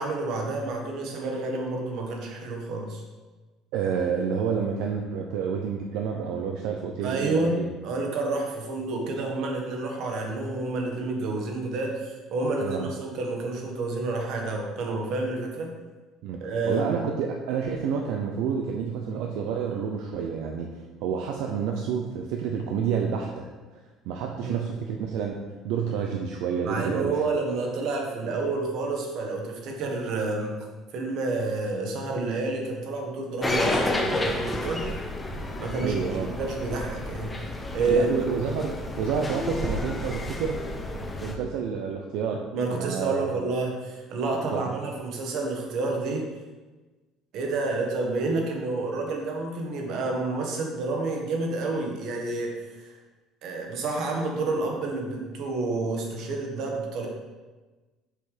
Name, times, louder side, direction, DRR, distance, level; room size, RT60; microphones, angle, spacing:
voice 1, 0.0-3.0 7.0-15.7 16.4-17.0 24.4-24.6 26.6-30.6 30.9-34.9 35.6-37.3 37.7-38.1 42.5-46.3 47.3-52.9 53.4-57.1, right 3 dB, 55° right, 1 dB, 1.6 m, -29 dB
voice 2, 3.7-7.7 12.6-12.9 16.2-16.4 16.7-20.8 21.0-23.5 24.1-25.4 25.6-27.2 35.8-36.3 37.9-40.6 41.2-43.3 44.5-44.7, right 6 dB, 75° right, 1 dB, 0.7 m, -29 dB
sound 1, 33.4-41.4, left 1 dB, 15° left, 0.7 m, -30 dB
6.8 x 5.7 x 5.0 m, 1.2 s
cardioid pair, 155°, 0 cm